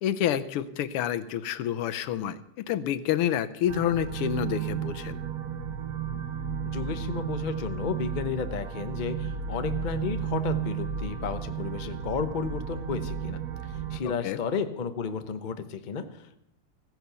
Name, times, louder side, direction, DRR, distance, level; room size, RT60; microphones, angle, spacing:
voice 1, 0.0-5.2 14.2-14.4, left 10 dB, 90° left, 13 dB, 1.7 m, -28 dB
sound 1, 3.7-14.0, right 7 dB, 55° right, 1.2 m, -33 dB
voice 2, 6.7-16.4, left 5 dB, 45° left, 9 dB, 0.5 m, -33 dB
15.5 x 10.5 x 6.9 m, 0.80 s
omnidirectional pair, 2.4 m